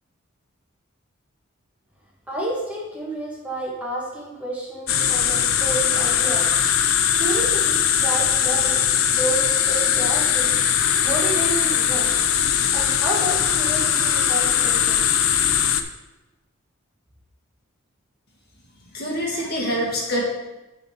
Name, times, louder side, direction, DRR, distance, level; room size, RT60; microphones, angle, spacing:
voice 1, 2.3-6.5 7.2-8.8 9.1-10.5 11.0-12.1 12.7-15.1 19.3-19.5, right 1 dB, 5° right, -4 dB, 1.5 m, -30 dB
sound 1, 4.9-15.8, left 9 dB, 80° left, 0.6 m, -20 dB
voice 2, 18.9-20.2, equal, 50° left, -2 dB, 1.8 m, -25 dB
9.5 x 4.1 x 5.1 m, 1.0 s
head